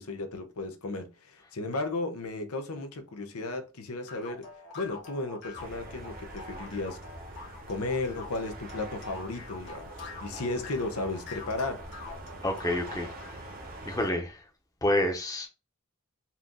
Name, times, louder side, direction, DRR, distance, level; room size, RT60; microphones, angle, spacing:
voice 1, 0.0-4.4 4.7-7.0 7.7-9.9 10.2-11.8, left 2 dB, 85° left, 0.8 m, -34 dB
sound 1, 4.1-13.4, left 3 dB, 50° left, 1.5 m, -45 dB
sound 2, 5.6-14.1, right 1 dB, 40° right, 1.0 m, -44 dB
voice 2, 12.4-13.1 13.9-14.3 14.8-15.5, left 1 dB, 15° left, 0.8 m, -28 dB
4.3 x 2.5 x 3.6 m
head